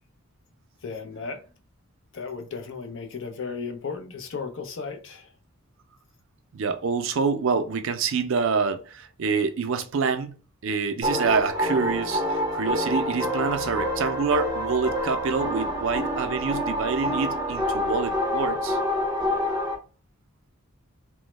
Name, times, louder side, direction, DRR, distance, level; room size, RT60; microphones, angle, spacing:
voice 1, 0.8-1.4 2.1-5.3, left 5 dB, 55° left, 0.5 m, -35 dB
voice 2, 6.5-18.8, right 5 dB, 60° right, 0.4 m, -27 dB
sound 1, 11.0-19.7, equal, 15° right, 0.6 m, -27 dB
3.0 x 2.0 x 3.1 m
head